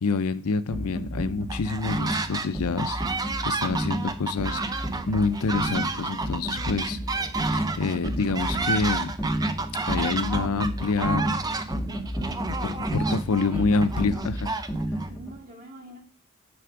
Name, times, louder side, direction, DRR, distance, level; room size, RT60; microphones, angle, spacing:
voice 1, 0.0-7.0 7.5-9.1 9.9-11.4 12.5-14.5, left 4 dB, 90° left, 11 dB, 0.6 m, -27 dB
sound 1, 0.7-15.4, right 1 dB, ahead, 1.2 m, -31 dB
sound 2, 1.5-2.5 2.8-15.1, right 3 dB, 15° right, 0.4 m, -31 dB
voice 2, 11.9-12.8 13.5-13.8 15.1-16.0, right 1 dB, 40° right, -1 dB, 2.0 m, -46 dB
9.6 x 3.5 x 4.6 m, 0.39 s
head